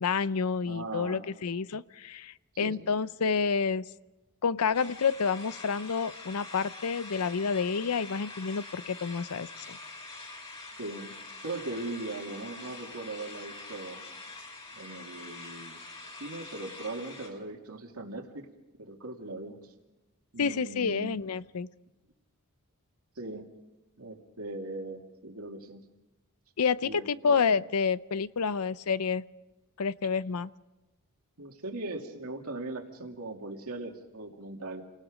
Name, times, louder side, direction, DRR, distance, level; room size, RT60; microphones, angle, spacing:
voice 1, 0.0-3.8 4.4-9.8 20.4-21.7 26.6-29.2 29.8-30.5, left 5 dB, 80° left, 17 dB, 0.6 m, -29 dB
voice 2, 0.6-1.2 2.6-2.8 10.8-11.1 11.4-14.0 14.7-18.5 18.8-19.6 20.3-21.2 23.2-23.5 24.0-25.8 26.8-27.4 31.4-34.8, right 2 dB, 75° right, 2 dB, 2.6 m, -39 dB
sound 1, 4.7-17.3, left 3 dB, 25° left, 4.5 m, -45 dB
29.5 x 18.5 x 5.1 m, 1.1 s
head